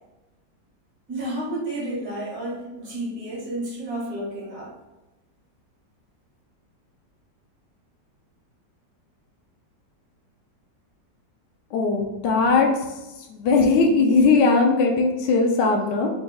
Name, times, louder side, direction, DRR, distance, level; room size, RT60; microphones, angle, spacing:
voice 1, 1.1-4.7, right 1 dB, 60° right, -4 dB, 1.8 m, -31 dB
voice 2, 11.7-12.7 13.3-16.1, left 4 dB, 80° left, 2 dB, 1.3 m, -19 dB
4.0 x 3.9 x 2.3 m, 1.0 s
omnidirectional pair, 1.9 m